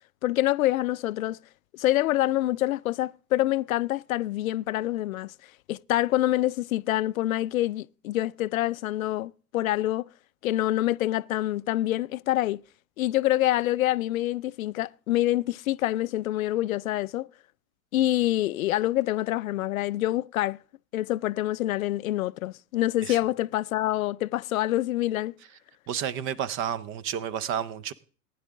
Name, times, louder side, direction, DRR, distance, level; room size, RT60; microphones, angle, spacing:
voice 1, 0.2-1.4 1.7-5.3 5.7-10.1 10.4-12.6 13.0-17.3 17.9-20.6 20.9-25.3, left 15 dB, 60° left, 0.5 m, -26 dB
voice 2, 25.9-27.9, right 9 dB, 25° right, 0.6 m, -31 dB
19.0 x 10.5 x 3.6 m
figure-of-eight pair, 95°, 48 cm